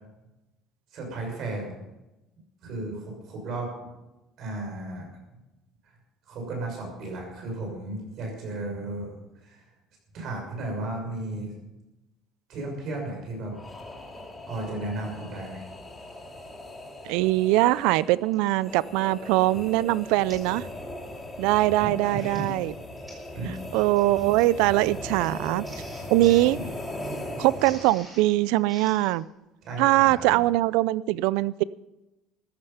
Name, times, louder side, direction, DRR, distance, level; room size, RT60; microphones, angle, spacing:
voice 1, 0.9-1.8 2.6-3.7 4.4-5.1 6.3-9.1 9.4-9.7 10.1-11.5 12.5-13.5 14.4-15.7 21.8-22.5 23.3-23.7 26.5-26.6 29.6-30.3, right 2 dB, 50° right, 0 dB, 6.4 m, -34 dB
sound 1, 13.5-28.1, left 1 dB, 10° left, 2.6 m, -39 dB
voice 2, 17.0-20.6 21.4-22.7 23.7-25.6 26.1-26.6 27.4-29.2 29.8-31.6, right 17 dB, 90° right, 20 dB, 0.4 m, -22 dB
Printer, 18.3-18.6 19.2-19.4 19.7-19.8 20.3-20.6 20.9-21.2 21.9-29.2, right 1 dB, 15° right, 4.4 m, -49 dB
14.5 x 12.0 x 5.7 m, 1.0 s
cardioid pair, 160°, 0 cm